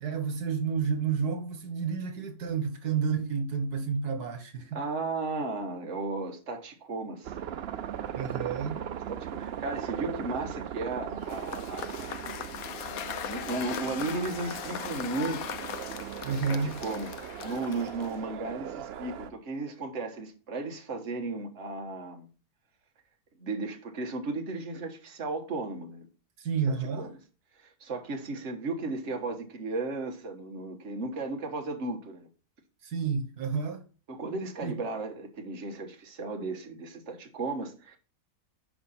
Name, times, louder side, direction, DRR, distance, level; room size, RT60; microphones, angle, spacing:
voice 1, 0.0-4.8 8.2-8.8 16.2-16.8 26.4-27.1 32.8-33.8 34.6-34.8, right 6 dB, 90° right, 1.9 m, -30 dB
voice 2, 4.7-7.3 9.1-12.2 13.0-15.6 16.5-22.3 23.4-26.1 26.7-27.1 27.6-32.3 34.1-38.0, right 3 dB, 50° right, 1.8 m, -35 dB
sound 1, 7.2-19.3, right 9 dB, 65° right, 0.6 m, -39 dB
Cheering / Applause / Crowd, 11.2-18.3, left 9 dB, 70° left, 1.2 m, -39 dB
11.0 x 5.2 x 4.3 m
omnidirectional pair, 1.6 m